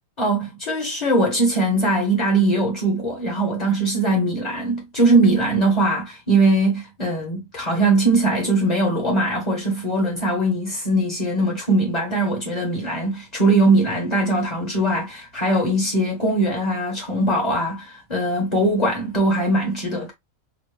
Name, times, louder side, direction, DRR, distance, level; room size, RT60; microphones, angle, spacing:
voice 1, 0.2-20.1, right 2 dB, 30° left, 1.4 m, -21 dB
4.2 x 2.6 x 3.3 m
omnidirectional pair, 1.4 m